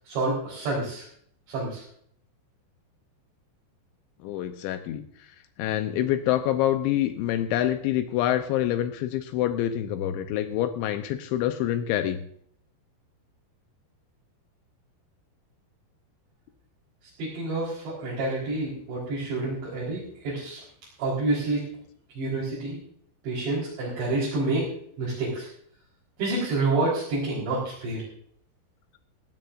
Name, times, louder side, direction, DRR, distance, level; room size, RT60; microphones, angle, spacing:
voice 1, 0.1-1.0 1.5-1.8 17.2-20.6 21.0-21.7 22.2-22.8 23.2-24.7 25.0-25.5 26.2-28.0, right 2 dB, 65° right, -7 dB, 6.5 m, -28 dB
voice 2, 4.2-5.0 5.6-12.2, left 12 dB, 80° left, 8 dB, 3.1 m, -26 dB
18.5 x 16.5 x 2.6 m, 0.63 s
omnidirectional pair, 5.5 m